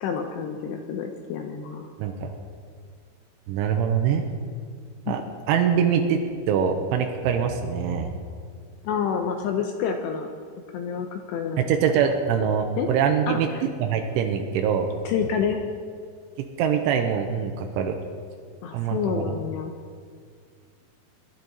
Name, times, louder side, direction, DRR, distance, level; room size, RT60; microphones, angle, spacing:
voice 1, 0.0-1.9 5.1-5.2 8.8-10.3 10.7-11.7 12.8-12.9 13.3-13.6 15.0-15.6 18.6-19.8, left 7 dB, 80° left, 4 dB, 2.6 m, -28 dB
voice 2, 2.0-2.3 3.5-4.2 5.1-5.2 5.5-6.2 6.5-8.2 11.6-14.9 16.6-18.0 18.7-19.3, right 7 dB, 85° right, 4 dB, 3.2 m, -24 dB
22.5 x 11.5 x 4.0 m, 2.1 s
omnidirectional pair, 5.6 m